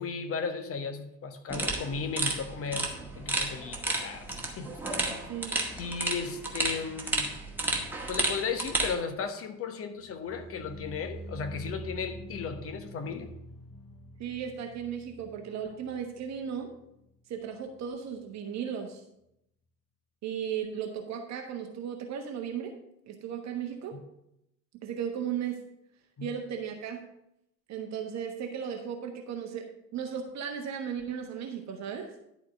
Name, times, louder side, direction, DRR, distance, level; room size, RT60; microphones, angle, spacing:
voice 1, 0.0-4.3 4.6-4.8 5.8-7.3 8.1-13.3 23.9-24.0 26.2-26.3, left 5 dB, 25° left, 8 dB, 1.0 m, -35 dB
sound 1, 1.5-8.9, right 2 dB, 5° right, 1.6 m, -32 dB
sound 2, 10.0-17.1 17.4-17.8 18.2-18.3, equal, 10° left, 0.7 m, -45 dB
voice 2, 14.2-16.7 17.3-19.0 20.2-22.7 23.1-24.0 24.7-25.6 26.2-27.1 27.7-29.7 29.9-32.1, right 8 dB, 35° right, 3 dB, 1.1 m, -36 dB
11.0 x 4.3 x 6.6 m, 0.81 s
figure-of-eight pair, 75°, 50 cm